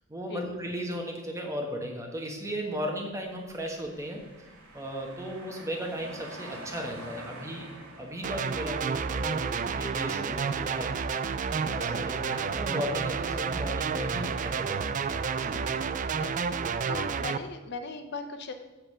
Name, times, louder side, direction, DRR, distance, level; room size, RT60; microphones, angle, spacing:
voice 1, 0.1-4.2 4.7-7.7 8.0-15.0 15.4-15.6, equal, 15° right, 1 dB, 1.3 m, -36 dB
sound 1, 3.1-9.9, right 2 dB, 90° right, 2.0 m, -47 dB
sound 2, 8.2-17.4, right 6 dB, 35° right, 0.3 m, -30 dB
voice 2, 16.9-18.5, left 3 dB, 50° left, 7 dB, 0.7 m, -38 dB
8.0 x 5.3 x 6.6 m, 1.2 s
head